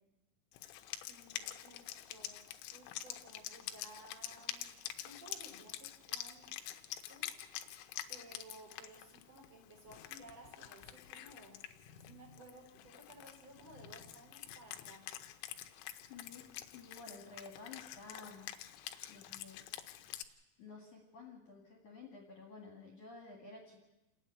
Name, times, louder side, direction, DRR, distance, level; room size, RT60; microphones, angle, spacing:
Wind instrument woodwind instrument, 0.5-20.3, left 13 dB, 85° left, 3.5 m, -47 dB
voice 1, 1.1-6.5 7.1-7.4 8.1-11.6 12.0-15.1, right 2 dB, 35° right, 0 dB, 4.4 m, -57 dB
voice 2, 16.1-18.5 19.1-19.6 20.6-23.8, left 4 dB, 50° left, 0 dB, 2.7 m, -52 dB
28.5 x 9.8 x 9.3 m, 1.0 s
omnidirectional pair, 5.6 m